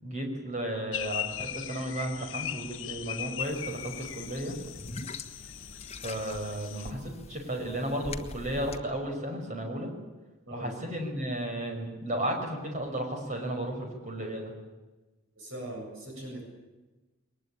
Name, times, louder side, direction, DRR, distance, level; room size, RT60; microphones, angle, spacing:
voice 1, 0.0-4.6 6.0-9.9 10.5-14.5, right 1 dB, 35° right, 2 dB, 5.7 m, -34 dB
sound 1, 0.9-6.9, left 11 dB, 65° left, 0.9 m, -39 dB
sound 2, 3.4-8.8, left 3 dB, 30° left, 1.3 m, -44 dB
voice 2, 15.4-16.4, right 1 dB, 75° right, 1 dB, 7.6 m, -40 dB
22.0 x 20.5 x 8.9 m, 1.2 s
head